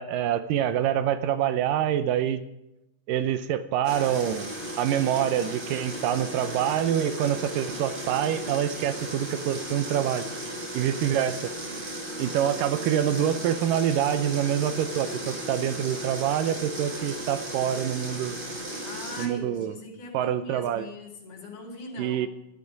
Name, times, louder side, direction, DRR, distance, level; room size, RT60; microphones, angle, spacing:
voice 1, 0.0-2.4 3.1-10.3 10.7-11.5 12.2-18.4 19.2-19.7 20.1-20.9 22.0-22.3, right 10 dB, 80° right, 12 dB, 2.4 m, -26 dB
sound 1, 3.8-19.3, right 1 dB, 25° right, 1.3 m, -36 dB
voice 2, 12.1-13.0 18.8-22.3, left 3 dB, 65° left, 0 dB, 4.1 m, -42 dB
14.5 x 11.0 x 5.3 m, 0.89 s
omnidirectional pair, 3.9 m